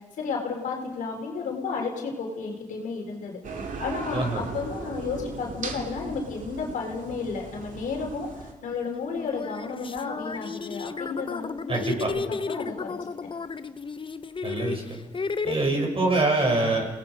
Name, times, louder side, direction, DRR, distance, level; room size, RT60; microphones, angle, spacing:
voice 1, 0.2-11.9 12.5-13.3, left 4 dB, 90° left, 1 dB, 3.7 m, -32 dB
sound 1, 3.4-8.5, right 4 dB, 80° right, 2.3 m, -38 dB
voice 2, 4.1-4.4 11.7-12.1 14.4-14.9 15.4-16.9, right 2 dB, 45° right, 1 dB, 6.9 m, -24 dB
sound 2, 8.4-8.5 9.2-15.6, left 4 dB, 40° left, 0.8 m, -33 dB
28.5 x 18.5 x 5.2 m, 1.2 s
cardioid pair, 55°, 13 cm